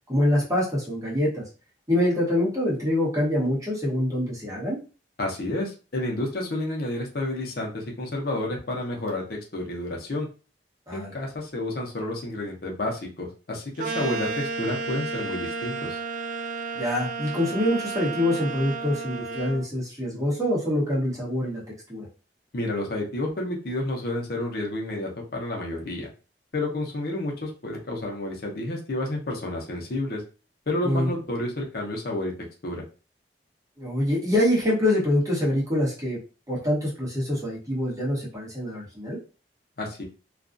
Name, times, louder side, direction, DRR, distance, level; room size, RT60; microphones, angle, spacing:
voice 1, 0.1-1.4 1.9-4.8 10.9-11.1 16.7-21.6 21.9-22.1 30.8-31.1 33.8-36.2 36.5-39.2, left 1 dB, 20° right, -5 dB, 1.0 m, -25 dB
voice 2, 5.2-10.3 10.9-16.0 22.5-26.1 26.5-30.2 30.7-32.3 32.6-32.8 39.8-40.0, left 1 dB, 60° left, 0 dB, 0.7 m, -30 dB
sound 1, 13.8-19.6, right 4 dB, 50° right, 0.4 m, -32 dB
2.4 x 2.3 x 2.5 m, 0.34 s
head